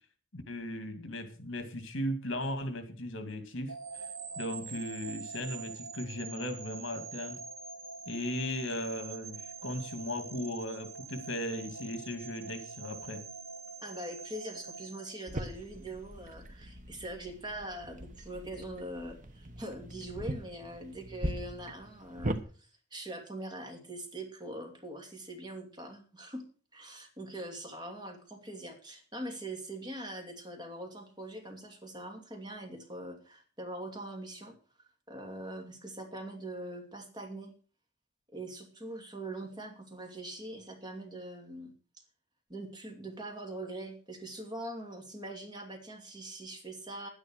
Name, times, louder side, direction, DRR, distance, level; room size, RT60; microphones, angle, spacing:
voice 1, 0.3-3.7 4.4-7.4 8.1-13.2, left 1 dB, 65° left, 8 dB, 2.4 m, -37 dB
sound 1, 3.7-15.8, right 5 dB, 75° right, 2.2 m, -44 dB
voice 2, 13.8-22.3 22.6-26.4 26.7-34.6 35.1-37.5 38.3-41.7 42.5-47.1, right 1 dB, 20° right, 3 dB, 2.7 m, -42 dB
sound 2, 15.3-22.4, right 1 dB, 40° right, 1.2 m, -40 dB
10.5 x 10.0 x 6.4 m, 0.40 s
head